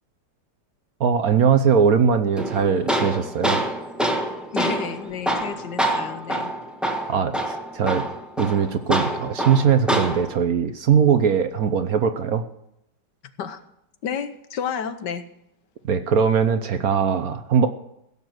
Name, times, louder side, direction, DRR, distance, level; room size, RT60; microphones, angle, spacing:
voice 1, 1.0-3.6 7.1-8.1 8.4-12.4 15.8-17.7, right 7 dB, 60° right, 10 dB, 1.2 m, -20 dB
Tools, 2.4-10.4, right 1 dB, ahead, 1.2 m, -26 dB
voice 2, 4.5-6.5 13.4-13.6 14.0-15.3, left 7 dB, 70° left, 11 dB, 1.6 m, -31 dB
16.5 x 7.0 x 7.9 m, 0.80 s
omnidirectional pair, 2.0 m